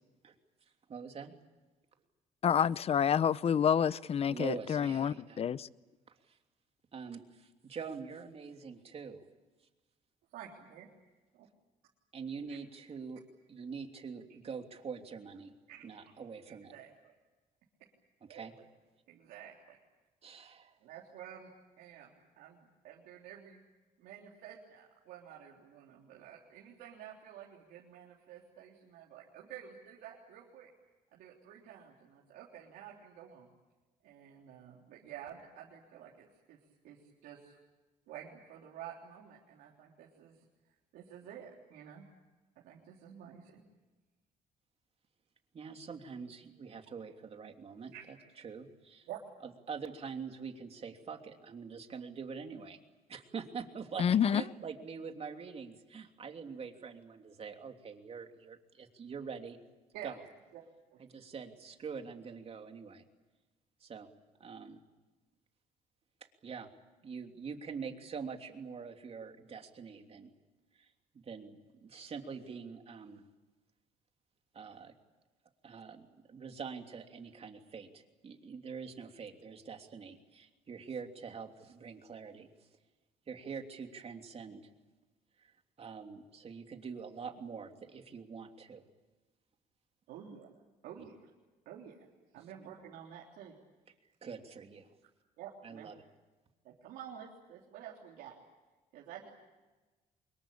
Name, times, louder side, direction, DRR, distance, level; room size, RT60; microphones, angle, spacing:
voice 1, 0.9-1.3 4.3-5.4 6.1-6.4 6.9-9.2 12.1-13.2 13.5-15.5 15.8-16.7 18.3-18.5 20.2-20.8 45.5-49.1 49.4-52.8 53.1-54.1 54.3-59.6 60.0-60.2 61.0-63.0 63.8-64.1 64.4-64.8 66.4-66.7 67.0-70.3 70.8-70.9 71.2-73.2 74.5-74.9 75.6-82.5 83.3-84.7 85.4-85.5 85.8-88.8 91.0-91.1 94.2-94.9 95.6-96.0, right 5 dB, 40° right, 3.1 m, -44 dB
voice 2, 2.4-5.7 54.0-54.4, left 8 dB, 40° left, 0.7 m, -28 dB
voice 3, 10.3-10.9 11.3-11.5 12.5-12.6 15.7-15.8 16.5-17.1 18.3-18.4 19.1-19.8 20.8-23.6 24.0-30.7 31.1-33.5 34.0-36.6 36.8-37.6 38.1-40.3 40.9-42.0 42.6-43.6 47.9-48.0 49.1-49.2 59.9-60.1 60.9-61.0 90.1-90.5 90.8-91.1 91.7-92.0 92.3-93.6 95.4-95.9 96.6-98.3 98.9-99.3, right 9 dB, 85° right, 3.5 m, -50 dB
25.0 x 22.0 x 8.8 m
cardioid pair, 100°, 15 cm